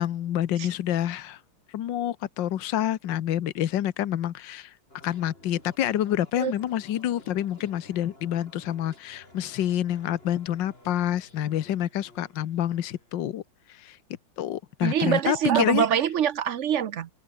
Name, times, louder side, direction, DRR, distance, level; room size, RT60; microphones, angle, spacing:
voice 1, 0.0-1.4 1.7-4.7 5.0-13.4 13.7-14.0 14.4-15.9, left 11 dB, 75° left, 1.7 m, -27 dB
sound 1, 4.9-13.2, left 2 dB, 30° left, 5.7 m, -53 dB
voice 2, 14.8-17.1, right 9 dB, 60° right, 0.7 m, -24 dB
omnidirectional pair, 2.0 m